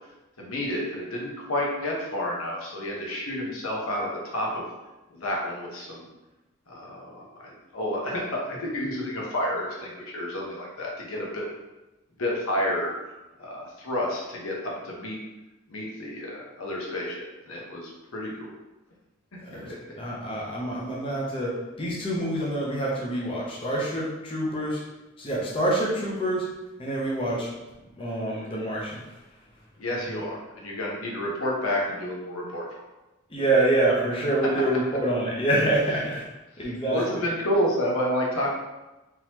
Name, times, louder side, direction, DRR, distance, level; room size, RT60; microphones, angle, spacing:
voice 1, 0.4-4.6 5.1-6.1 6.7-11.4 12.2-12.9 13.4-15.2 15.7-18.5 19.7-19.8 29.8-32.7 36.9-38.6, left 1 dB, 85° left, -2 dB, 0.9 m, -30 dB
voice 2, 19.4-24.8 25.2-26.5 26.8-27.5 27.9-29.0 33.3-36.3 36.6-37.0, right 1 dB, 25° left, -5 dB, 0.7 m, -26 dB
3.7 x 3.0 x 2.9 m, 1.0 s
head